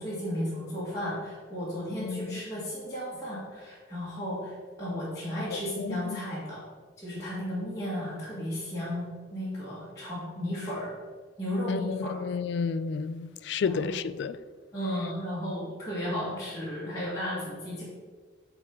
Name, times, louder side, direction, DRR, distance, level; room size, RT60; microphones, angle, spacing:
voice 1, 0.0-6.6 7.0-10.9 11.4-12.1 13.6-13.9 14.7-17.8, left 1 dB, 15° left, 1.6 m, -34 dB
voice 2, 2.0-2.5 5.5-6.2 11.7-14.4, left 5 dB, 65° left, 0.3 m, -32 dB
9.1 x 3.7 x 4.4 m
head